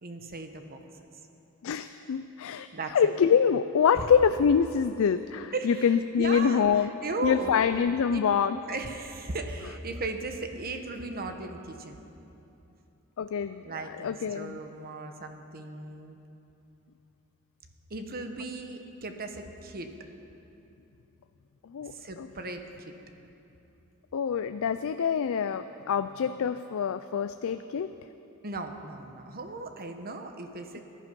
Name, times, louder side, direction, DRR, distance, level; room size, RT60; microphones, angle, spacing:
voice 1, 0.0-0.8 2.7-3.1 3.9-4.1 5.5-7.5 8.1-8.2 8.5-12.0 13.6-16.2 17.9-19.9 21.8-22.9 28.4-30.8, right 3 dB, 45° right, 6 dB, 1.1 m, -37 dB
voice 2, 1.6-2.7 2.9-6.9 7.2-8.6 13.2-13.6 14.0-14.6 21.6-22.3 24.1-27.9, left 7 dB, 65° left, 11 dB, 0.4 m, -25 dB
19.5 x 11.0 x 5.3 m, 2.9 s
head